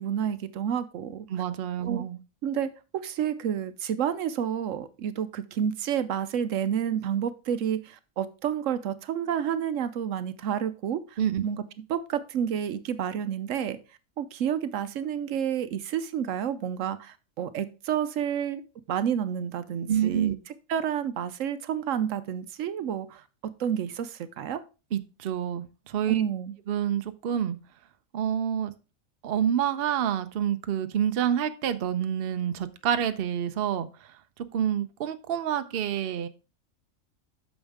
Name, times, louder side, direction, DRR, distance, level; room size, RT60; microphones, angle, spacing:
voice 1, 0.0-1.3 1.8-2.0 2.4-11.6 11.9-13.8 14.2-18.6 18.9-20.3 20.7-24.6 26.1-26.6, right 9 dB, 75° right, 1.0 m, -30 dB
voice 2, 1.3-2.2 11.2-11.4 19.9-20.3 24.9-26.2 26.7-27.6 28.1-28.7 29.2-33.9 34.5-36.3, right 9 dB, 55° right, 0.8 m, -27 dB
8.7 x 6.3 x 3.5 m
omnidirectional pair, 1.4 m